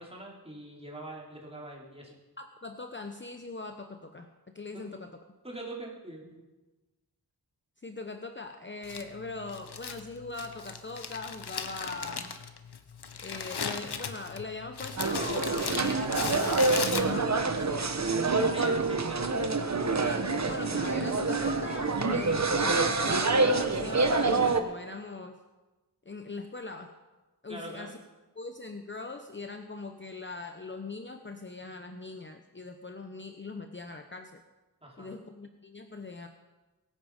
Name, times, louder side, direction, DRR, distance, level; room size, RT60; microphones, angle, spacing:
voice 1, 0.0-2.2 4.7-4.8 5.4-6.5 18.4-19.2 27.5-27.9 34.8-35.2, right 1 dB, 15° right, -4 dB, 4.2 m, -43 dB
voice 2, 2.4-5.1 7.8-12.4 13.2-18.0 19.9-25.4 26.0-26.9 27.4-28.0 28.4-34.4 35.0-36.3, left 3 dB, 30° left, 6 dB, 0.8 m, -41 dB
Crumpling crinkling, 8.8-17.5, left 6 dB, 80° left, 1.1 m, -37 dB
sound 1, 15.0-24.6, right 3 dB, 45° right, 1.1 m, -27 dB
21.5 x 9.1 x 5.1 m, 1.2 s
wide cardioid pair, 85°, 39 cm